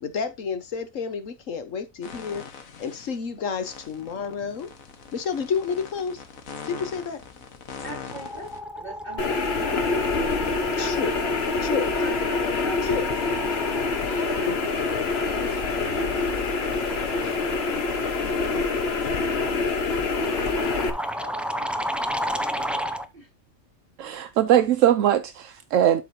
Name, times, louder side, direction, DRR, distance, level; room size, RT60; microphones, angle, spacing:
voice 1, 0.0-2.4 2.8-4.7 5.1-6.2 6.7-7.2 9.6-9.8 10.7-11.2 11.7-12.2 12.8-13.1 14.5-14.6 15.7-15.8, left 6 dB, 70° left, 1.4 m, -30 dB
sound 1, 2.0-3.2 3.6-8.6, left 6 dB, 90° left, 1.6 m, -42 dB
sound 2, 7.2-7.6 7.8-23.1, equal, ahead, 0.3 m, -34 dB
voice 2, 7.8-14.8 15.1-21.7 22.0-23.3, right 2 dB, 40° right, 4.2 m, -43 dB
sound 3, 9.2-20.9, left 4 dB, 50° left, 1.4 m, -26 dB
voice 3, 24.0-26.0, right 11 dB, 75° right, 0.9 m, -20 dB
12.0 x 4.9 x 2.8 m
omnidirectional pair, 1.4 m